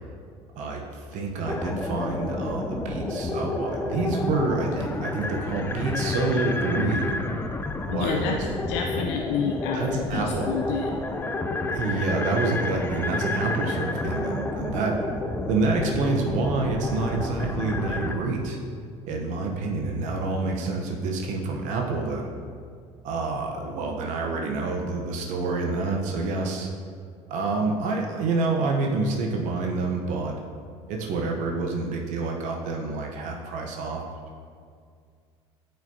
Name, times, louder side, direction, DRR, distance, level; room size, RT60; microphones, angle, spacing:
voice 1, 0.6-7.1 7.8-8.4 9.7-10.5 11.7-15.0 15.5-18.6 19.1-22.3 23.0-26.7 27.3-30.4 30.9-34.0, right 3 dB, 65° right, 1 dB, 0.9 m, -27 dB
sound 1, 1.4-18.1, left 2 dB, 15° left, 0.5 m, -30 dB
voice 2, 7.9-8.4 8.7-10.9, left 7 dB, 80° left, 3 dB, 0.5 m, -29 dB
8.7 x 5.5 x 2.8 m, 2.1 s
supercardioid pair, 85°, 14 cm